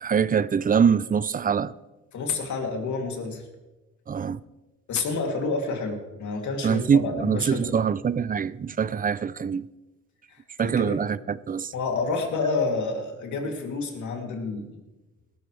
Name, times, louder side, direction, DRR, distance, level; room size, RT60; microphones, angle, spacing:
voice 1, 0.0-1.7 4.1-4.4 6.6-9.7 10.6-11.7, right 7 dB, 30° right, 0.4 m, -24 dB
voice 2, 2.1-3.4 4.9-7.8 10.3-11.0 11.7-14.7, left 4 dB, 70° left, 2.9 m, -29 dB
18.5 x 13.5 x 3.3 m
cardioid pair, 90°, 30 cm